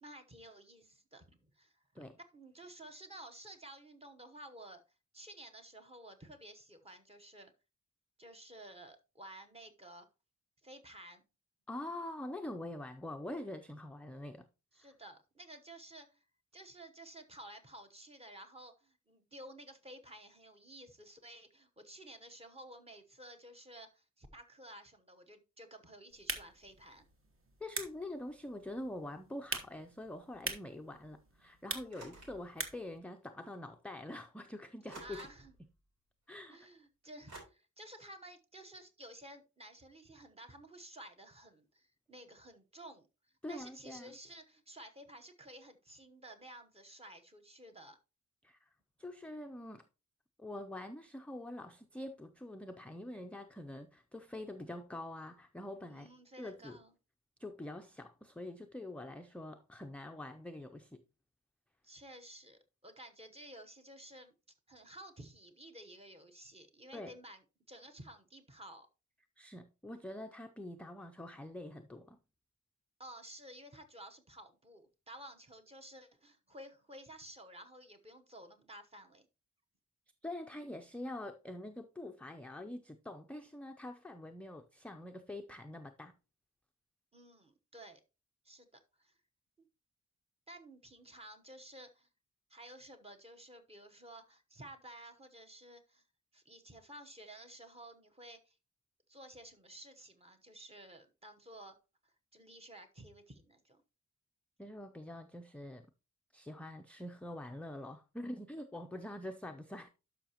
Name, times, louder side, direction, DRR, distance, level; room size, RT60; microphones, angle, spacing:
voice 1, 0.0-2.0 2.3-4.8 5.1-7.5 8.2-10.1 10.6-11.2 14.7-16.2 16.5-27.1 27.4-27.5 31.7-32.3 34.9-35.5 36.5-43.1 43.5-48.0 55.8-56.9 61.8-64.3 64.7-67.4 67.7-68.9 73.0-79.3 87.1-88.0 88.4-89.1 89.6-89.7 90.5-92.1 92.5-96.0 96.3-98.6 99.1-101.8 102.0-103.8, right 1 dB, 20° right, 1.0 m, -53 dB
voice 2, 11.7-14.5 14.8-14.9 27.6-35.2 36.3-36.6 43.4-44.1 48.4-48.7 49.0-49.9 50.4-56.1 56.4-56.8 57.4-61.0 66.9-67.1 69.4-72.2 80.2-86.2 104.6-105.9 106.3-109.9, left 1 dB, 5° left, 0.4 m, -45 dB
sound 1, 26.1-33.0, right 3 dB, 45° right, 1.3 m, -45 dB
sound 2, 31.9-32.4 33.5-33.6 34.9-35.6 37.3-37.4, right 2 dB, 90° right, 3.8 m, -51 dB
12.0 x 5.6 x 2.9 m
wide cardioid pair, 165°, 30 cm